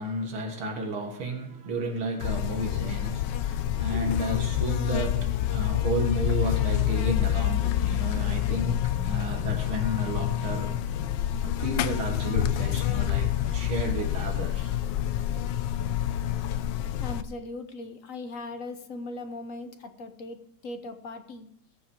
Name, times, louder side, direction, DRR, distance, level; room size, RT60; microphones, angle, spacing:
voice 1, 0.0-10.8 11.4-14.8 15.0-15.3, right 1 dB, 70° right, 2.6 m, -33 dB
Buzz, 2.2-17.2, left 11 dB, 70° left, 1.2 m, -27 dB
voice 2, 17.0-21.5, left 2 dB, 50° left, 1.1 m, -39 dB
20.5 x 7.3 x 4.6 m
omnidirectional pair, 2.4 m